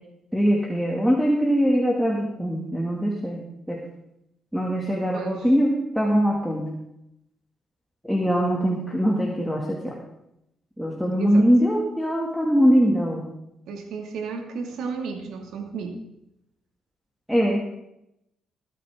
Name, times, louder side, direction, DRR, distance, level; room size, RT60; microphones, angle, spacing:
voice 1, 0.3-3.8 4.5-6.7 8.0-9.9 10.8-13.2 17.3-17.8, equal, ahead, -2 dB, 2.1 m, -22 dB
voice 2, 5.1-5.4 11.2-11.5 13.7-16.0, right 5 dB, 80° right, 4 dB, 2.2 m, -33 dB
21.0 x 9.2 x 3.7 m, 0.83 s
cardioid pair, 90°, 0 cm